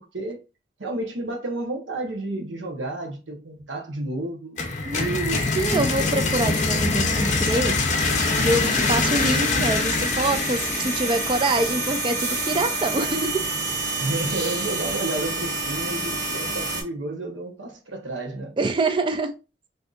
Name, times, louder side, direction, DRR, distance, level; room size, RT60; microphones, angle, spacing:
voice 1, 0.8-4.6 14.0-18.5, right 2 dB, 90° right, 0.9 m, -31 dB
sound 1, 4.6-12.3, left 3 dB, 40° left, 0.6 m, -24 dB
voice 2, 4.9-7.7 8.4-13.4 18.6-19.3, right 2 dB, 25° right, 0.4 m, -25 dB
sound 2, 8.0-16.8, right 2 dB, 45° right, 1.4 m, -29 dB
3.8 x 2.6 x 2.4 m
head